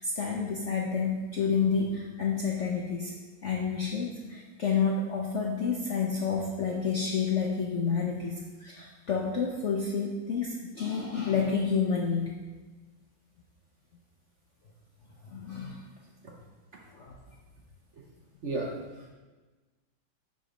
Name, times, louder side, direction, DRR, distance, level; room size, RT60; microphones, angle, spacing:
voice 1, 0.0-3.2 3.4-12.3 15.2-15.8 16.9-17.1, left 5 dB, 60° left, -1 dB, 0.8 m, -29 dB
voice 2, 18.4-19.1, right 2 dB, 50° right, -2 dB, 1.0 m, -34 dB
9.3 x 4.0 x 5.0 m, 1.3 s
omnidirectional pair, 2.1 m